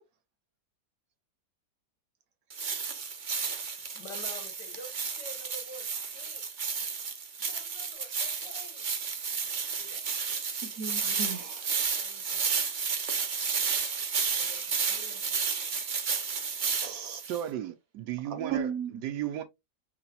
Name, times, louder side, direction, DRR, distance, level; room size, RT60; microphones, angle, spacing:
sound 1, 2.5-17.4, right 5 dB, 40° right, 0.7 m, -32 dB
voice 1, 3.9-6.5 7.4-8.9 9.3-10.0 11.9-12.5 14.3-15.4, left 1 dB, 80° left, 2.1 m, -49 dB
voice 2, 10.6-11.7 16.8-17.2 18.3-19.0, right 6 dB, 60° right, 1.2 m, -35 dB
voice 3, 17.2-18.7 19.0-19.4, right 11 dB, 85° right, 1.2 m, -34 dB
6.0 x 3.3 x 2.7 m
omnidirectional pair, 1.8 m